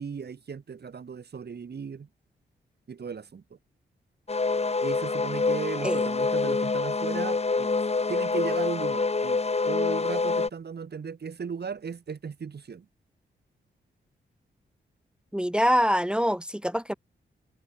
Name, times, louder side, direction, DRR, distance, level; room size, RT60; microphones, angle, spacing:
voice 1, 0.0-2.1 2.9-3.4 4.8-7.7 8.1-9.4 9.7-12.9, right 6 dB, 60° right, 5.3 m, -36 dB
sound 1, 4.3-10.5, left 3 dB, 35° left, 3.3 m, -26 dB
voice 2, 15.3-16.9, equal, 5° right, 1.1 m, -25 dB
cardioid pair, 85°, 19 cm